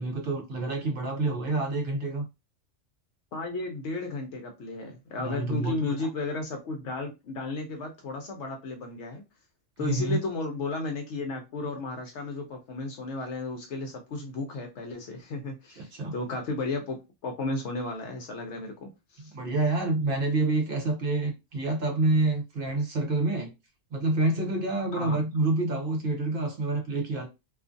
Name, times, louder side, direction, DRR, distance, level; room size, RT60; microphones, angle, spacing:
voice 1, 0.0-2.3 5.2-6.0 9.8-10.2 15.8-16.1 19.3-23.5 23.9-27.3, right 2 dB, 55° right, 0.7 m, -27 dB
voice 2, 3.3-9.2 9.8-19.3 24.9-25.2, left 3 dB, 70° left, 0.8 m, -34 dB
2.4 x 2.3 x 2.5 m
omnidirectional pair, 1.3 m